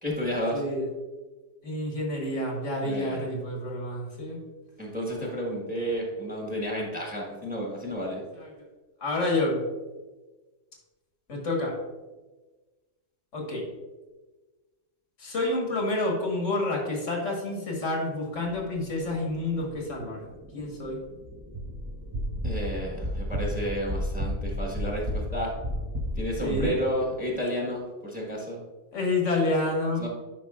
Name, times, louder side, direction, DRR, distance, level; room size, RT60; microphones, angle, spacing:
voice 1, 0.0-0.6 2.8-3.2 4.8-8.2 22.4-25.5 26.1-28.6 30.0-30.1, equal, 5° right, -2 dB, 1.3 m, -31 dB
voice 2, 0.5-0.9 1.6-4.4 7.7-8.5 9.0-9.7 11.3-11.8 13.3-13.7 15.2-20.2 20.5-21.0 26.4-26.8 28.9-30.1, left 2 dB, 90° left, -1 dB, 1.8 m, -29 dB
sound 1, 18.5-26.6, equal, 25° right, 0.6 m, -33 dB
10.0 x 5.1 x 2.4 m, 1.2 s
omnidirectional pair, 1.2 m